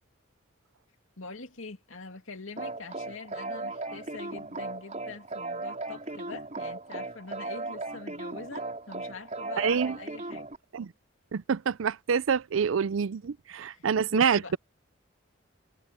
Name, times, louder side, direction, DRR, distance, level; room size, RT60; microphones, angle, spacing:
voice 1, 1.2-10.5 13.6-14.6, left 3 dB, 80° left, 2.6 m, -44 dB
sound 1, 2.6-10.6, right 2 dB, 35° right, 4.2 m, -37 dB
voice 2, 9.6-10.0 10.7-10.9 11.3-14.6, right 6 dB, 75° right, 0.5 m, -27 dB
head